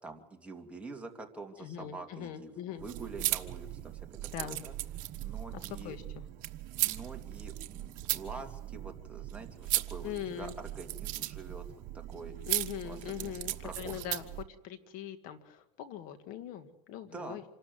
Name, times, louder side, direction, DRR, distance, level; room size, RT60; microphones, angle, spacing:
voice 1, 0.0-4.1 4.4-4.7 5.2-6.0 6.8-11.7 11.9-12.3 12.8-14.0 17.1-17.4, right 3 dB, 10° right, 1 dB, 2.6 m, -46 dB
voice 2, 1.6-2.9 4.3-4.6 5.8-6.2 10.0-10.6 12.4-14.3 14.6-17.4, left 10 dB, 60° left, 10 dB, 2.0 m, -41 dB
sound 1, 2.8-14.4, right 16 dB, 60° right, 1.2 m, -37 dB
26.5 x 13.0 x 7.9 m, 0.93 s
supercardioid pair, 130°, 16 cm